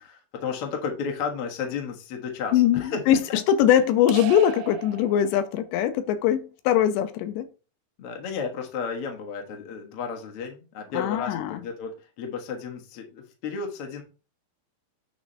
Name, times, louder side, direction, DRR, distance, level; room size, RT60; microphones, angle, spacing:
voice 1, 0.0-3.0 3.3-3.4 8.0-14.0, left 6 dB, 70° left, 1.3 m, -33 dB
voice 2, 2.5-3.2 3.5-7.5 10.9-11.6, left 10 dB, 90° left, 2.9 m, -22 dB
sound 1, 4.1-5.8, right 13 dB, 85° right, 2.0 m, -37 dB
9.5 x 3.2 x 5.6 m
omnidirectional pair, 5.1 m